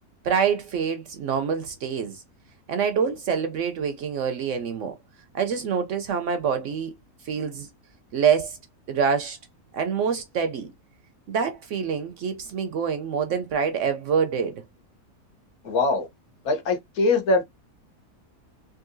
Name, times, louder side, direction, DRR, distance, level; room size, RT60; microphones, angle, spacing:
voice 1, 0.2-2.2 2.7-5.0 5.3-6.9 7.2-7.7 8.1-8.6 8.9-9.4 9.7-10.7 11.3-14.6, right 6 dB, 65° right, 0.8 m, -26 dB
voice 2, 15.6-16.1 16.4-17.5, left 3 dB, 75° left, 1.4 m, -22 dB
3.8 x 2.6 x 2.5 m
omnidirectional pair, 1.6 m